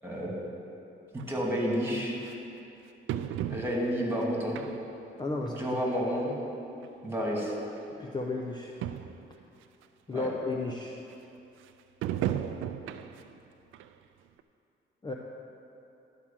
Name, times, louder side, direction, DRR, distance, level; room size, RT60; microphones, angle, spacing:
voice 1, 1.1-2.3 3.5-4.6 5.6-6.4 7.0-7.5 10.1-10.3, equal, 10° right, -3 dB, 2.5 m, -30 dB
sound 1, 1.2-1.3 2.2-2.3 3.1-4.0 4.5-5.0 5.5-5.6 6.5-6.6 6.8-6.9 7.8-7.9 8.2-8.3 8.5-8.6 8.8-9.3 9.8-9.9 12.0-13.3 13.7-13.9 14.4-14.5, right 11 dB, 90° right, 0.4 m, -34 dB
voice 2, 5.2-5.8 8.0-8.8 10.1-11.0 15.0-15.1, left 2 dB, 20° left, 0 dB, 0.7 m, -33 dB
11.5 x 4.9 x 7.4 m, 2.8 s
cardioid pair, 90°, 20 cm